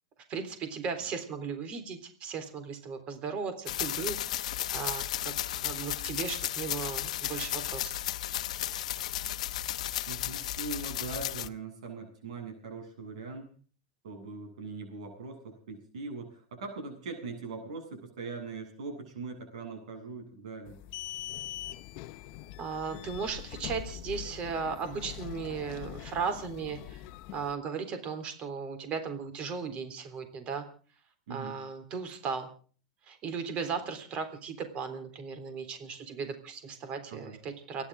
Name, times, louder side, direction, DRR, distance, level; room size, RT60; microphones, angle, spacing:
voice 1, 0.3-8.0 22.6-27.0 27.3-30.6 31.3-32.5 33.0-37.9, right 5 dB, 35° right, 8 dB, 3.7 m, -36 dB
sound 1, 3.7-11.5, left 12 dB, 80° left, 0.9 m, -34 dB
voice 2, 10.1-13.5 14.0-20.8 31.3-31.6 37.1-37.4, right 4 dB, 75° right, 4 dB, 7.9 m, -41 dB
sound 2, 20.7-27.5, left 12 dB, 45° left, 1.0 m, -43 dB
29.5 x 11.5 x 3.7 m, 0.41 s
supercardioid pair, 140°, 4 cm